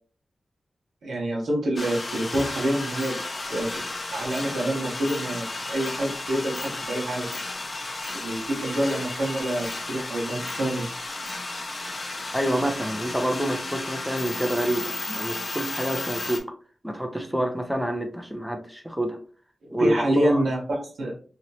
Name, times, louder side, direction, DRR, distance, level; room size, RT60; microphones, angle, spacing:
voice 1, 1.0-3.1 3.5-3.7 4.1-7.3 8.1-11.1 19.6-21.1, right 1 dB, 85° right, -2 dB, 1.3 m, -27 dB
sound 1, 1.8-16.4, left 2 dB, 40° left, 0.6 m, -33 dB
voice 2, 12.3-16.5 16.8-19.2 19.7-20.4, right 1 dB, 5° right, 4 dB, 0.7 m, -27 dB
2.9 x 2.9 x 2.8 m, 0.40 s
wide cardioid pair, 80°, 0 cm